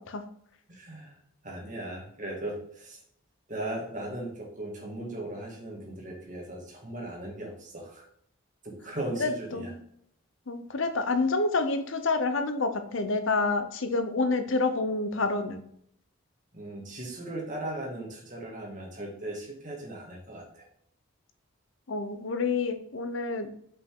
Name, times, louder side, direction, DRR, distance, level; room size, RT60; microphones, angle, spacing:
voice 1, 0.7-1.1 1.4-3.0 3.5-8.1 8.6-9.7 16.5-20.7, right 1 dB, 35° right, -1 dB, 1.8 m, -38 dB
voice 2, 9.2-9.8 10.5-15.6 21.9-23.5, left 3 dB, 65° left, 8 dB, 0.8 m, -28 dB
5.4 x 5.3 x 3.7 m, 0.68 s
head